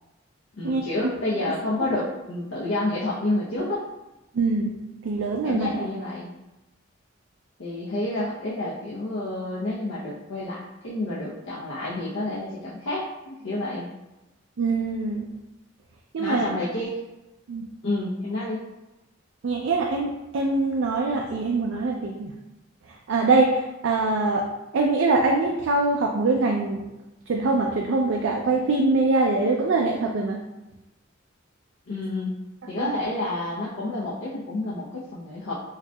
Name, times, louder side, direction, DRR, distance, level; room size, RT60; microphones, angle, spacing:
voice 1, 0.6-3.8 5.4-6.3 7.6-13.8 16.2-17.0 17.8-18.6 31.9-32.4 32.7-35.5, left 2 dB, 85° left, -7 dB, 0.7 m, -29 dB
voice 2, 4.3-4.8 5.0-5.7 14.6-15.3 16.1-16.5 17.5-17.7 19.4-22.3 23.1-24.4 24.7-26.8 27.3-30.4 32.8-32.9, right 3 dB, 70° right, 1 dB, 0.4 m, -23 dB
4.8 x 2.7 x 2.2 m, 0.99 s
head